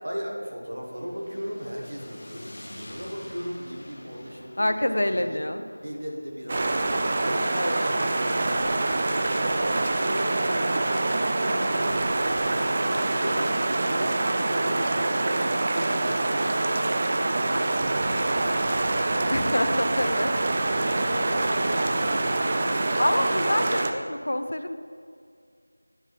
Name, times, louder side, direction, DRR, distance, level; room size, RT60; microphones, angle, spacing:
voice 1, 0.0-5.4 5.8-11.9 12.8-16.1 16.4-19.4 20.5-23.1, equal, 65° right, -1 dB, 1.6 m, -38 dB
sound 1, 0.7-9.0, left 1 dB, 45° left, 0.9 m, -48 dB
voice 2, 4.6-5.6 7.5-7.9 11.5-11.9 19.3-20.3 23.0-24.8, left 1 dB, 65° left, 8 dB, 0.5 m, -27 dB
sound 2, 6.5-23.9, right 2 dB, 25° right, 0.3 m, -25 dB
sound 3, 17.8-22.2, right 1 dB, 80° right, 0.6 m, -40 dB
9.8 x 4.4 x 3.5 m, 2.2 s
figure-of-eight pair, 175°, 0 cm